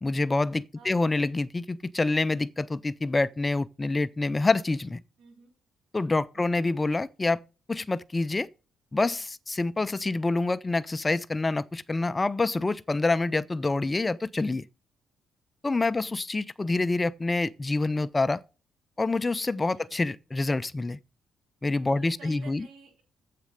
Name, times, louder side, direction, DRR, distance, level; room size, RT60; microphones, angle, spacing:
voice 1, 0.0-5.0 5.9-7.4 7.7-8.5 8.9-14.6 15.6-18.4 19.0-21.0 21.6-22.7, left 3 dB, 20° left, 0.3 m, -27 dB
voice 2, 0.8-1.2 5.2-5.5 6.5-6.6 16.1-16.2 19.7-19.9 21.9-23.0, right 5 dB, 70° right, 3.4 m, -51 dB
7.4 x 6.6 x 6.4 m
cardioid pair, 90°, 0 cm